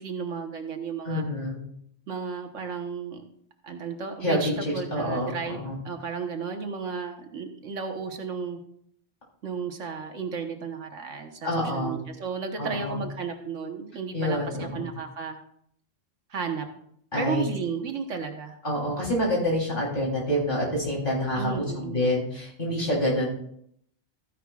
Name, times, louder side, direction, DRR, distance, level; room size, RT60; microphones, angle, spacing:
voice 1, 0.0-1.2 2.1-3.2 3.6-8.6 9.4-15.4 16.3-16.7 17.2-18.6 21.3-22.0, right 5 dB, 75° right, 5 dB, 1.5 m, -33 dB
voice 2, 1.0-1.6 4.2-5.8 11.4-12.0 12.6-13.0 14.1-14.9 17.1-17.4 18.6-23.3, equal, 40° left, -4 dB, 3.6 m, -27 dB
14.5 x 10.0 x 2.4 m, 0.68 s
omnidirectional pair, 1.3 m